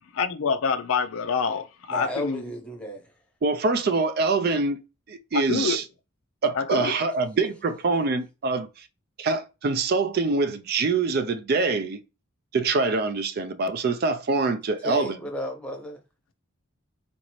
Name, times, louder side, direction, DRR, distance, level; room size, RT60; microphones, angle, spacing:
voice 1, 0.1-2.4 5.3-5.8 6.5-7.0, left 5 dB, 80° left, 0.4 m, -26 dB
voice 2, 1.9-3.0 14.8-16.0, equal, 5° left, 0.8 m, -33 dB
voice 3, 3.4-4.8 5.1-5.8 6.4-8.7 9.2-12.0 12.5-15.2, right 3 dB, 50° right, 0.4 m, -24 dB
4.0 x 2.6 x 3.0 m
head